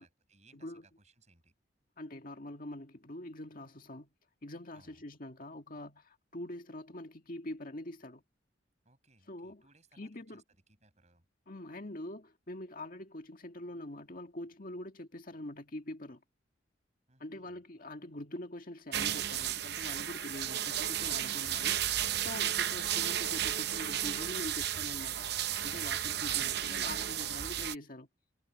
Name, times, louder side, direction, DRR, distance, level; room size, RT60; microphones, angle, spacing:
voice 1, 0.0-1.5 4.7-5.0 8.8-10.4 10.7-11.2 17.1-17.6, right 3 dB, 35° right, 7.3 m, -66 dB
voice 2, 0.5-0.8 2.0-4.1 4.4-8.2 9.3-9.6 10.0-10.4 11.5-16.2 17.2-25.4 25.6-28.1, left 1 dB, 45° left, 2.0 m, -44 dB
sound 1, 18.9-27.7, right 11 dB, 55° right, 0.8 m, -33 dB
head